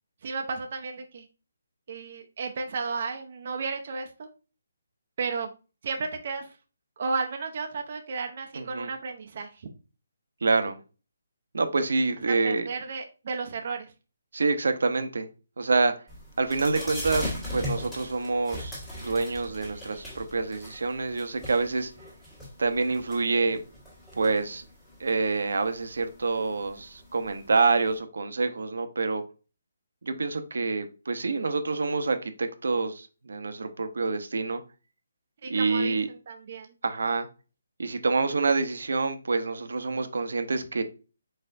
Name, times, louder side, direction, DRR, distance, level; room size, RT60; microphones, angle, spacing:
voice 1, 0.2-1.2 1.9-4.3 5.2-5.5 5.8-6.5 7.0-9.7 12.3-13.9 35.4-36.7, right 4 dB, 40° right, 0.6 m, -33 dB
voice 2, 8.5-8.9 10.4-10.8 11.5-12.7 14.3-15.3 15.6-16.0 16.4-21.9 22.6-23.6 24.2-24.6 25.0-29.2 30.0-34.6 35.5-36.1 36.8-37.3 37.8-40.8, right 3 dB, 75° right, 0.7 m, -27 dB
sound 1, 16.1-28.0, left 1 dB, 5° left, 1.5 m, -40 dB
4.3 x 4.3 x 2.5 m
hypercardioid pair, 170°, 0 cm